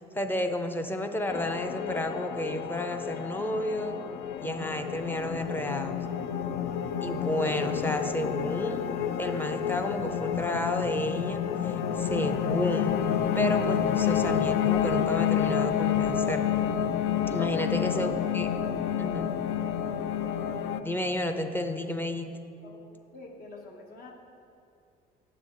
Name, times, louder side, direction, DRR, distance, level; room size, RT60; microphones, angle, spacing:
voice 1, 0.1-4.0 4.4-5.9 7.0-8.8 9.2-13.0 13.3-16.4 17.3-18.5 19.0-19.3 20.8-22.3, left 1 dB, 10° left, 6 dB, 0.5 m, -31 dB
sound 1, 1.3-20.8, left 8 dB, 85° left, 0.4 m, -29 dB
voice 2, 17.7-18.0 22.6-24.1, left 3 dB, 60° left, 1 dB, 1.1 m, -47 dB
9.2 x 7.0 x 3.8 m, 2.6 s
cardioid pair, 110°, 17 cm